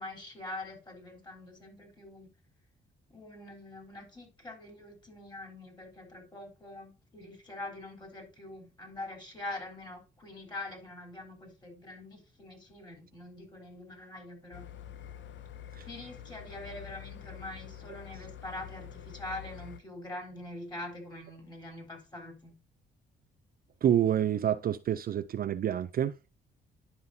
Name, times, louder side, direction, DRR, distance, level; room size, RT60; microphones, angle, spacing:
voice 1, 0.0-2.3 3.1-14.7 15.8-22.6, left 2 dB, 20° left, 3.6 m, -44 dB
sound 1, 14.5-19.8, left 10 dB, 65° left, 0.6 m, -46 dB
voice 2, 23.8-26.1, right 10 dB, 50° right, 0.4 m, -28 dB
10.5 x 5.6 x 2.7 m
cardioid pair, 90°, 20 cm